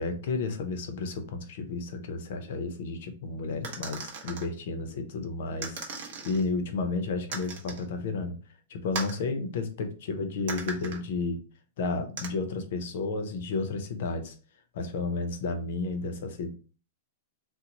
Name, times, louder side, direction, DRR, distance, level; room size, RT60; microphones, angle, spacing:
voice 1, 0.0-8.4 8.7-11.4 11.8-14.3 14.7-16.5, left 3 dB, 50° left, 7 dB, 0.5 m, -32 dB
sound 1, 3.6-4.5 5.6-6.4 7.3-7.9 8.9-9.2 10.5-11.0 12.2-12.3, right 4 dB, 45° right, 0.7 m, -37 dB
2.9 x 2.0 x 3.8 m, 0.37 s
supercardioid pair, 180°, 0 cm